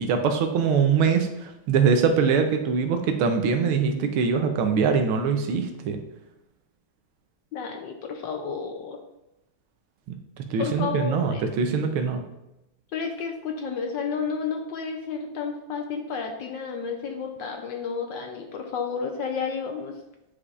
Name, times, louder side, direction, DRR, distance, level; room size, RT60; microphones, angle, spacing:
voice 1, 0.0-6.0 10.5-12.2, right 5 dB, 85° right, 6 dB, 1.6 m, -23 dB
voice 2, 7.5-9.0 10.6-11.5 12.9-20.0, left 5 dB, 70° left, 3 dB, 1.2 m, -31 dB
9.5 x 4.9 x 2.4 m, 0.92 s
omnidirectional pair, 2.4 m